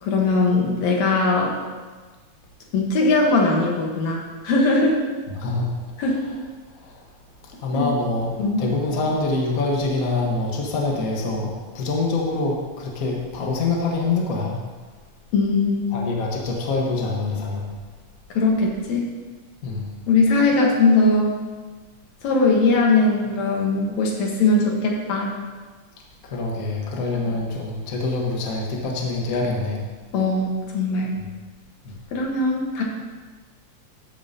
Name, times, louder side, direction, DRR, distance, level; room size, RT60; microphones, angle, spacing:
voice 1, 0.0-1.6 2.7-5.0 6.0-6.2 7.7-7.9 8.4-8.6 15.3-15.9 18.3-19.1 20.1-21.4 22.2-25.3 30.1-31.1 32.1-32.8, left 3 dB, 70° left, -1 dB, 2.6 m, -20 dB
voice 2, 5.3-6.1 6.7-7.1 7.4-14.6 15.9-17.7 19.6-19.9 26.2-29.8 31.1-31.3 31.8-32.0, left 3 dB, 45° left, -1 dB, 1.2 m, -25 dB
13.5 x 8.6 x 2.8 m, 1.4 s
omnidirectional pair, 3.4 m